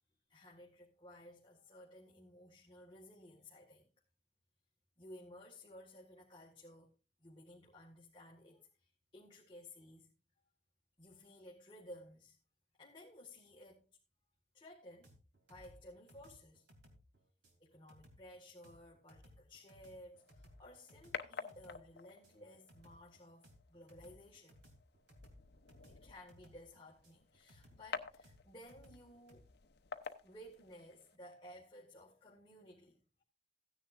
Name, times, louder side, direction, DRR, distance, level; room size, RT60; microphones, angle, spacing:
voice 1, 0.3-3.9 5.0-6.9 7.2-10.1 11.0-12.4 12.8-13.9 14.5-15.1 15.5-16.7 17.6-24.6 25.9-29.4 30.2-33.2, left 1 dB, 30° left, 1.8 m, -56 dB
sound 1, 15.0-29.4, equal, 85° right, 3.1 m, -63 dB
sound 2, 20.2-31.2, left 5 dB, 65° left, 0.8 m, -51 dB
16.0 x 10.0 x 2.5 m
head